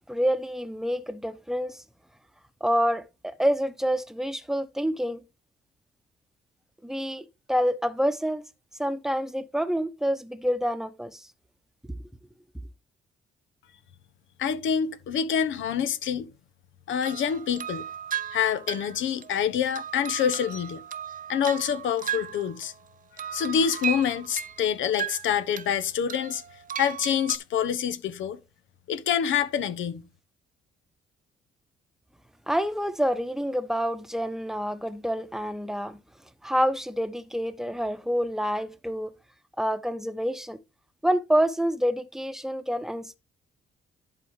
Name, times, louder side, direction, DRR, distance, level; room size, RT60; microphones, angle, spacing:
voice 1, 0.1-1.8 2.6-5.2 6.8-8.4 8.8-11.3 11.9-12.0 32.5-36.0 36.4-39.1 39.6-40.6 41.0-43.2, equal, ahead, 1.0 m, -27 dB
voice 2, 14.4-16.3 16.9-17.8 18.3-20.8 21.3-22.7 23.2-26.4 26.8-28.4 28.9-30.0, left 8 dB, 75° left, 1.1 m, -26 dB
sound 1, 17.0-22.9 23.2-25.7 26.1-27.4, right 8 dB, 45° right, 0.7 m, -36 dB
11.0 x 4.1 x 4.8 m
cardioid pair, 90°, 20 cm